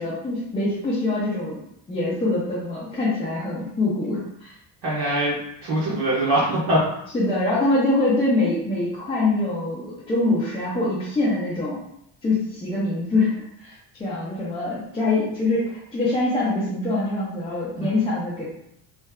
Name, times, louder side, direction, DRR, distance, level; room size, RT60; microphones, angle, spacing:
voice 1, 0.0-1.6 1.9-4.5 7.1-11.8 12.2-13.7 14.0-18.4, left 2 dB, 15° left, -8 dB, 0.4 m, -24 dB
voice 2, 4.8-6.8 17.8-17.9, right 1 dB, 60° right, -8 dB, 1.0 m, -23 dB
3.1 x 2.2 x 3.5 m, 0.77 s
cardioid pair, 175°, 45 cm